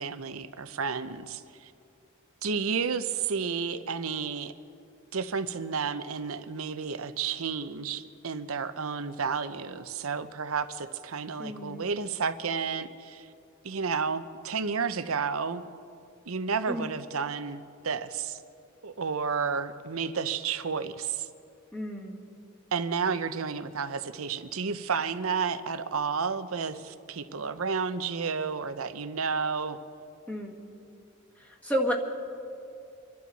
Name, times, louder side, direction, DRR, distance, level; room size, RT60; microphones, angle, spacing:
voice 1, 0.0-1.7 2.4-4.5 5.1-13.3 13.6-15.6 16.3-18.4 18.8-21.3 22.7-29.8, right 5 dB, 90° right, 11 dB, 0.8 m, -31 dB
voice 2, 11.4-11.9 16.7-16.9 21.7-22.2 30.3-30.6 31.4-31.9, equal, 5° left, -1 dB, 1.8 m, -31 dB
26.5 x 12.0 x 4.2 m, 2.5 s
head